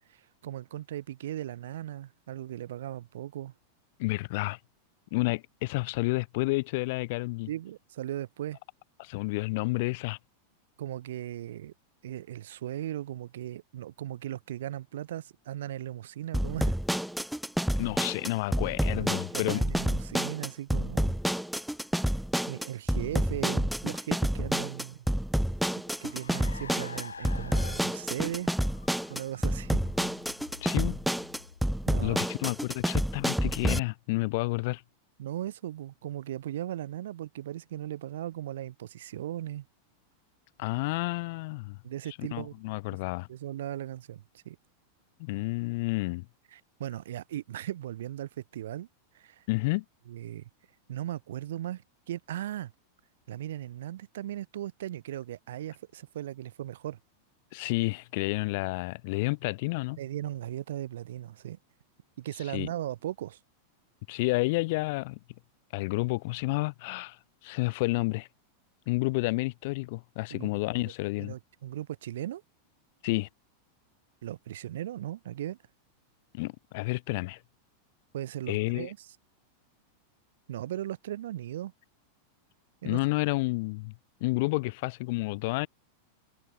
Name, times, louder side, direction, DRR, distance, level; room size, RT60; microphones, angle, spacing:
voice 1, 0.1-3.5 7.5-8.6 10.8-11.7 12.0-16.8 18.9-21.1 22.4-25.0 26.0-28.5 29.1-29.8 31.9-32.2 35.2-39.6 41.8-42.5 43.3-44.6 46.5-48.9 49.1-49.5 50.1-50.5 50.9-52.7 53.3-57.0 60.0-61.6 62.2-63.4 70.3-70.5 70.8-70.9 71.2-72.4 74.2-75.6 78.1-79.0 80.5-81.7 82.8-83.0, right 12 dB, 60° right, 1.0 m, -37 dB
voice 2, 4.0-4.6 5.1-7.5 9.0-10.2 17.8-19.6 30.6-31.0 32.0-34.8 40.6-41.8 42.2-43.3 45.2-46.3 49.5-49.8 57.5-60.0 62.5-62.7 64.1-65.2 65.7-68.3 68.9-71.3 73.0-73.3 76.3-77.4 78.5-78.9 82.8-83.9 84.2-85.7, left 24 dB, 50° left, 1.1 m, -30 dB
sound 1, 16.3-33.8, equal, ahead, 0.3 m, -29 dB
Car, 24.9-32.7, left 5 dB, 75° left, 2.1 m, -48 dB
figure-of-eight pair, 90°, 0 cm